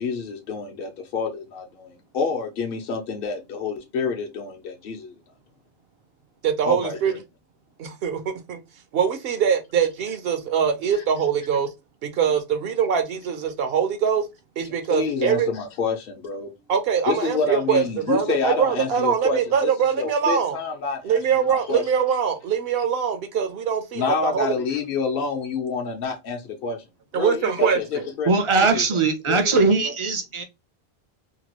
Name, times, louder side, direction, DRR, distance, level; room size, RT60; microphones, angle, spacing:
voice 1, 0.0-5.1 6.6-7.2 14.9-16.5 17.1-21.2 21.5-21.8 23.9-26.8 27.1-28.3 28.6-28.8 29.3-29.9, left 5 dB, 65° left, 0.9 m, -28 dB
voice 2, 6.4-7.1 7.8-8.6 8.9-11.7 12.0-14.2 14.6-15.5 16.7-20.6 21.0-24.5 27.1-28.0, right 7 dB, 70° right, 0.8 m, -23 dB
voice 3, 28.3-30.4, right 4 dB, 40° right, 0.5 m, -20 dB
2.9 x 2.3 x 2.9 m
omnidirectional pair, 1.1 m